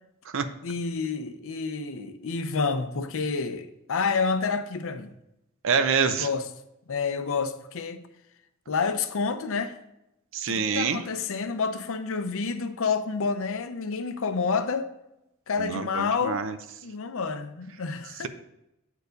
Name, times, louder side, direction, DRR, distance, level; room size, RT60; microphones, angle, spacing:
voice 1, 0.6-5.1 6.1-6.5 6.9-8.0 8.7-9.8 10.5-14.9 15.5-16.5 16.8-18.3, left 5 dB, 65° left, 0.6 m, -29 dB
voice 2, 5.6-6.3 10.3-11.0 15.6-16.6, right 5 dB, 60° right, 0.6 m, -26 dB
8.2 x 4.6 x 5.1 m
head